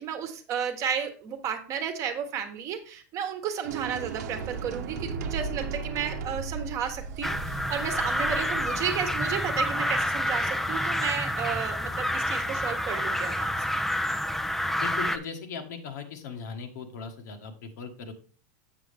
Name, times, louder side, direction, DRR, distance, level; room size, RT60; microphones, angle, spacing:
voice 1, 0.0-13.5, right 8 dB, 35° right, 7 dB, 1.1 m, -33 dB
sound 1, 3.6-11.7, right 5 dB, 70° right, 0.9 m, -37 dB
sound 2, 7.2-15.2, equal, 5° left, 0.4 m, -28 dB
voice 2, 14.8-18.1, left 5 dB, 75° left, 5 dB, 1.4 m, -38 dB
7.4 x 6.2 x 3.4 m, 0.39 s
supercardioid pair, 145°, 10 cm